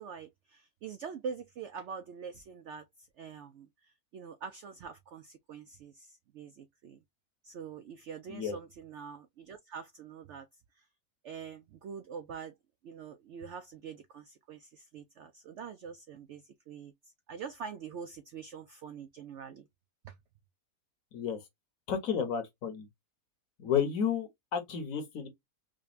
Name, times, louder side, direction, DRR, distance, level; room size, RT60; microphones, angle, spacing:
voice 1, 0.0-7.0 7.4-10.5 10.8-10.9 11.2-12.5 12.8-19.6 20.0-20.1, right 6 dB, 75° right, 0.6 m, -45 dB
voice 2, 21.9-22.9 23.6-25.3, left 7 dB, 60° left, 1.2 m, -32 dB
5.0 x 2.2 x 2.4 m
omnidirectional pair, 1.7 m